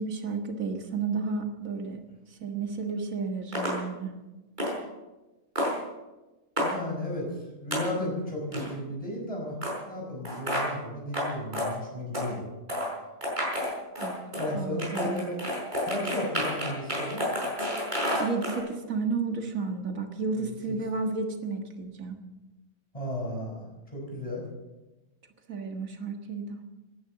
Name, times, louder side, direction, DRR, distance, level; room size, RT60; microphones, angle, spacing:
voice 1, 0.0-2.0 2.3-4.1 14.0-14.1 14.5-15.2 18.2-22.2 25.5-26.6, right 4 dB, 85° right, 4 dB, 2.1 m, -32 dB
sound 1, 3.5-3.8 4.6-4.7 5.6-5.8 6.6-6.7 7.7-7.8 8.5-8.7 9.6-9.7 10.2-10.7 11.1-11.3 11.5-11.7 12.1-12.3 12.7-12.9 13.2-14.5 14.8-18.6, equal, 35° right, 5.4 m, -29 dB
voice 2, 6.6-9.6 9.8-12.5 14.3-15.4 15.8-17.3 20.4-20.8 22.9-23.7 23.9-24.5, left 1 dB, 25° left, -1 dB, 5.7 m, -34 dB
16.5 x 11.0 x 7.7 m, 1.1 s
omnidirectional pair, 1.4 m